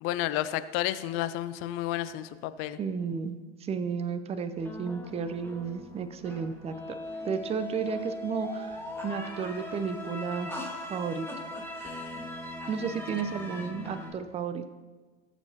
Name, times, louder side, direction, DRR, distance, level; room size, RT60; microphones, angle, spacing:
voice 1, 0.0-2.8, left 13 dB, 40° left, 14 dB, 0.6 m, -31 dB
voice 2, 2.8-7.0 7.2-10.6 10.9-11.3 12.7-14.6, right 6 dB, 20° right, 10 dB, 0.6 m, -33 dB
sound 1, 4.6-14.1, left 2 dB, 5° left, 1.7 m, -39 dB
18.0 x 7.1 x 2.9 m, 1.4 s
figure-of-eight pair, 85°, 34 cm